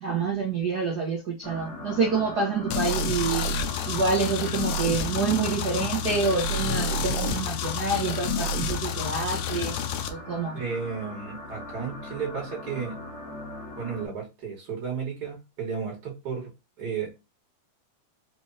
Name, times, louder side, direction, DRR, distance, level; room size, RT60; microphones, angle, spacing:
voice 1, 0.0-3.5 3.8-9.8 10.1-10.6, right 4 dB, 75° right, 0.8 m, -27 dB
sound 1, 1.4-14.1, left 2 dB, 45° left, 2.0 m, -41 dB
sound 2, 2.7-10.1, left 4 dB, 75° left, 1.8 m, -29 dB
voice 2, 10.5-13.0 13.8-16.5 16.8-17.3, right 6 dB, 40° right, 2.0 m, -33 dB
5.2 x 3.2 x 2.8 m
omnidirectional pair, 3.5 m